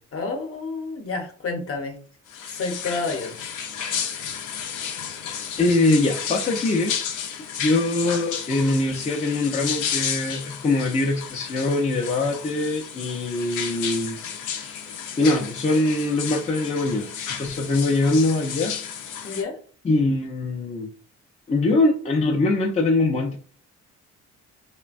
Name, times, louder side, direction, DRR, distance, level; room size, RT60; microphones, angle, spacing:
voice 1, 0.1-2.0 2.5-3.5 19.2-19.6, left 3 dB, 50° left, 0.8 m, -30 dB
sound 1, 2.3-19.4, left 8 dB, 90° left, 0.6 m, -32 dB
voice 2, 5.6-6.9 7.6-14.2 14.5-14.8 15.2-17.1 17.4-18.7 19.8-20.9 21.5-23.4, left 2 dB, 25° left, 0.5 m, -22 dB
3.2 x 2.2 x 2.4 m
cardioid pair, 90°, 30 cm